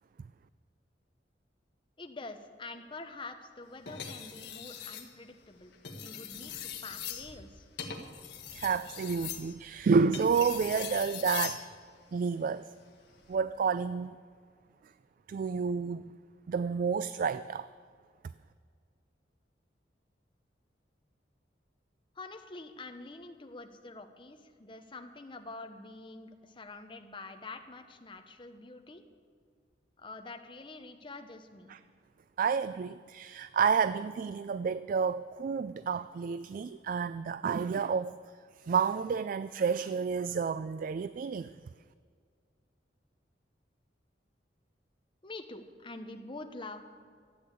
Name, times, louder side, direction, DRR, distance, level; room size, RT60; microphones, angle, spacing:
voice 1, 2.0-7.6 22.1-29.0 30.0-31.7 45.2-46.8, left 3 dB, 30° left, 6 dB, 1.0 m, -46 dB
sound 1, 3.9-5.1 5.7-11.6 13.1-13.4, left 8 dB, 70° left, 1.6 m, -41 dB
voice 2, 8.5-11.6 12.1-12.7 13.3-14.2 15.3-16.2 16.5-17.7 31.7-31.8 32.4-38.1 38.6-41.5, right 5 dB, 50° right, 14 dB, 0.3 m, -30 dB
14.0 x 8.5 x 8.4 m, 2.1 s
head